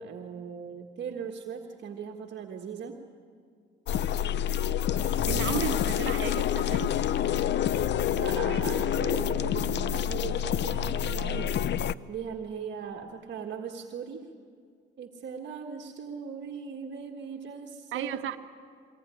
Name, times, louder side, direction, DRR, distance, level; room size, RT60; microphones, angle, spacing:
voice 1, 0.0-3.0 5.2-5.7 8.1-11.6 12.1-14.3 15.0-18.1, right 6 dB, 60° right, 1 dB, 1.6 m, -39 dB
sound 1, 3.9-11.9, left 10 dB, 65° left, 0.6 m, -27 dB
voice 2, 5.3-7.0 17.9-18.4, right 10 dB, 80° right, 7 dB, 1.3 m, -33 dB
23.0 x 17.5 x 10.0 m, 2.1 s
cardioid pair, 90°, 20 cm